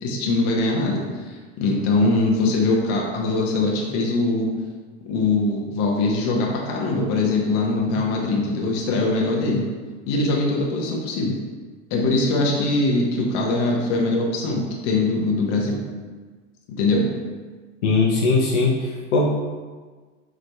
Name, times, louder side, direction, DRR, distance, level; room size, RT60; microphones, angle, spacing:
voice 1, 0.0-4.5 5.0-9.7 10.1-11.4 11.9-15.8 16.7-17.0, left 2 dB, 50° left, -1 dB, 1.0 m, -22 dB
voice 2, 17.8-19.3, left 3 dB, 75° left, -3 dB, 0.8 m, -20 dB
4.7 x 3.7 x 2.2 m, 1.4 s
hypercardioid pair, 85°, 36 cm